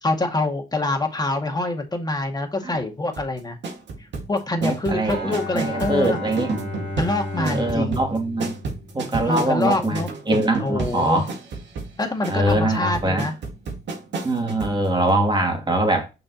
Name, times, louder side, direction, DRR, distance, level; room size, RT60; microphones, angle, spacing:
voice 1, 0.0-3.6 4.3-6.2 7.0-8.0 9.2-10.1 10.6-11.2 12.0-13.3, left 2 dB, 20° left, 1.9 m, -25 dB
sound 1, 3.1-14.8 15.1-15.2, right 3 dB, 65° right, 1.9 m, -31 dB
voice 2, 4.6-6.5 7.4-8.5 8.9-11.3 12.3-13.3 14.2-16.1, right 1 dB, 25° right, 2.6 m, -23 dB
Bowed string instrument, 5.0-9.5, left 2 dB, 85° right, 3.3 m, -33 dB
6.5 x 6.0 x 2.9 m
cardioid pair, 90°, 20 cm